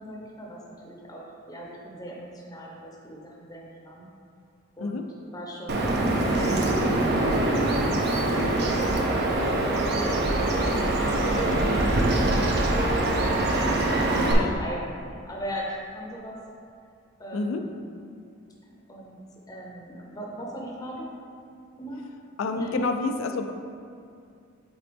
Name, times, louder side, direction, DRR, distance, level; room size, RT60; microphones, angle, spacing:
voice 1, 0.0-4.1 4.8-5.0 5.3-7.3 14.1-16.4 17.2-17.8 18.6-19.2 19.5-21.1 21.8-22.1 22.6-22.8, equal, 15° left, -3 dB, 0.7 m, -40 dB
Bird vocalization bird call bird song, 5.7-14.3, right 2 dB, 50° right, 0.6 m, -23 dB
voice 2, 17.3-17.7 22.4-23.5, left 3 dB, 70° left, 6 dB, 0.4 m, -29 dB
7.7 x 4.0 x 3.5 m, 2.4 s
head